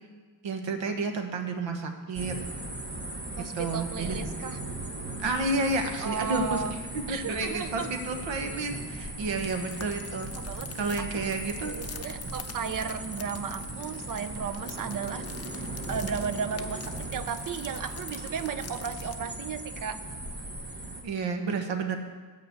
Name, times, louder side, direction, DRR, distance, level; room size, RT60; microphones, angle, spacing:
voice 1, 0.4-2.3 3.5-4.2 5.2-6.6 7.1-10.3 10.8-11.8 21.0-21.9, right 3 dB, 70° right, 5 dB, 1.3 m, -30 dB
sound 1, 2.1-21.0, right 1 dB, 20° right, 1.1 m, -38 dB
voice 2, 3.4-4.6 6.0-6.8 7.1-7.9 10.3-11.3 11.6-20.0, right 6 dB, 45° right, 13 dB, 0.5 m, -35 dB
sound 2, 9.3-19.1, left 7 dB, 35° left, 0.5 m, -47 dB
9.7 x 5.3 x 7.9 m, 1.5 s
wide cardioid pair, 155°, 46 cm